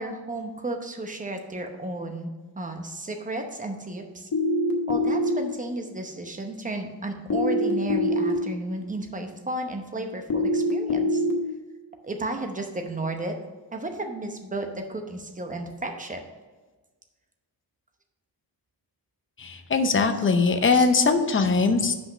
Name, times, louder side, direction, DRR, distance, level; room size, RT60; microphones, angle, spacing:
voice 1, 0.0-4.3 4.9-11.2 12.0-13.3 13.7-16.2 20.1-20.3 20.7-20.9, right 2 dB, 20° right, 5 dB, 0.9 m, -33 dB
sound 1, 4.3-5.3 7.3-8.3 10.3-11.3, left 1 dB, 55° left, 1.1 m, -23 dB
voice 2, 19.4-21.9, left 4 dB, 30° left, 7 dB, 0.6 m, -21 dB
6.1 x 5.1 x 6.2 m, 1.3 s
wide cardioid pair, 150°, 41 cm